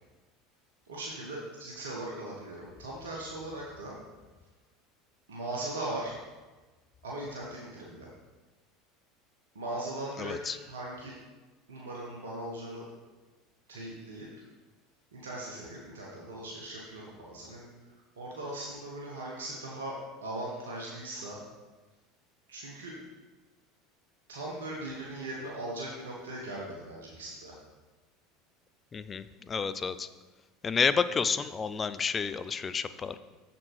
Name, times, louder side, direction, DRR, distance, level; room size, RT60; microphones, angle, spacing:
voice 1, 0.8-4.0 5.3-6.2 7.0-8.1 9.5-11.1 11.7-12.9 13.7-14.3 15.1-17.7 18.2-21.4 22.5-23.0 24.3-27.5, right 1 dB, 85° right, -3 dB, 1.3 m, -39 dB
voice 2, 10.2-10.6 28.9-30.1 30.6-33.2, left 5 dB, 30° left, 13 dB, 0.4 m, -30 dB
7.4 x 5.9 x 4.8 m, 1.2 s
hypercardioid pair, 80°, 0 cm